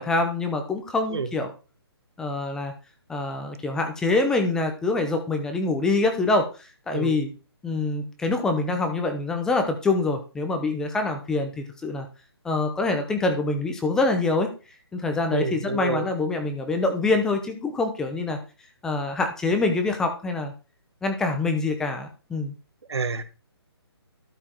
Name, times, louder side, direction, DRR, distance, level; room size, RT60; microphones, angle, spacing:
voice 1, 0.0-1.5 2.2-2.7 3.1-7.3 7.6-12.1 12.4-14.5 14.9-18.4 18.8-20.5 21.0-22.5, left 3 dB, 5° left, 5 dB, 0.7 m, -25 dB
voice 2, 15.3-16.1 22.9-23.2, right 4 dB, 80° right, 12 dB, 1.4 m, -28 dB
12.5 x 4.9 x 4.5 m, 0.33 s
hypercardioid pair, 165°, 14 cm